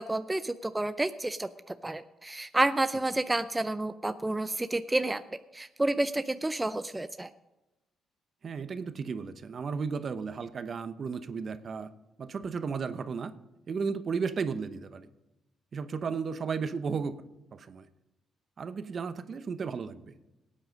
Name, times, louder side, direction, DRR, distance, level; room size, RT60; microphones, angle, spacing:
voice 1, 0.0-5.2 5.5-7.3, right 2 dB, 15° right, 11 dB, 0.4 m, -30 dB
voice 2, 8.4-11.9 12.2-13.3 13.7-15.1 15.7-17.1 17.5-17.9 18.6-20.1, right 5 dB, 45° right, 11 dB, 0.8 m, -34 dB
18.0 x 8.9 x 5.3 m, 0.99 s
cardioid pair, 90°, 0 cm